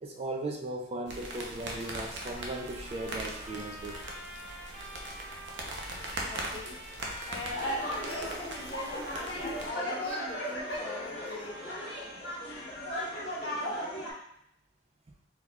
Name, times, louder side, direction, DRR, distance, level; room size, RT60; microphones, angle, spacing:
voice 1, 0.0-4.0, right 2 dB, 35° right, 2 dB, 0.4 m, -37 dB
sound 1, 1.1-9.7, right 2 dB, 75° right, 0.7 m, -41 dB
Trumpet, 1.8-13.4, equal, 15° right, 0.8 m, -48 dB
voice 2, 6.2-6.8 7.2-9.0 9.4-11.6, left 2 dB, 35° left, -4 dB, 0.9 m, -42 dB
sound 2, 7.5-14.1, equal, 70° left, 1.4 m, -36 dB
4.2 x 3.5 x 2.3 m, 0.73 s
head